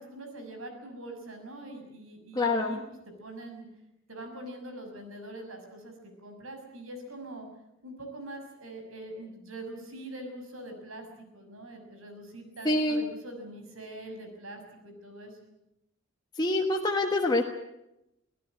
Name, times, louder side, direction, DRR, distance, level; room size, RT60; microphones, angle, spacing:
voice 1, 0.0-2.8 3.2-3.6 4.1-5.9 6.2-7.5 7.8-11.1 11.3-15.4, right 1 dB, 80° right, 5 dB, 6.3 m, -43 dB
voice 2, 2.3-2.8 12.6-13.1 16.4-17.4, left 2 dB, 20° left, 1 dB, 1.5 m, -26 dB
25.0 x 16.0 x 8.9 m, 0.87 s
head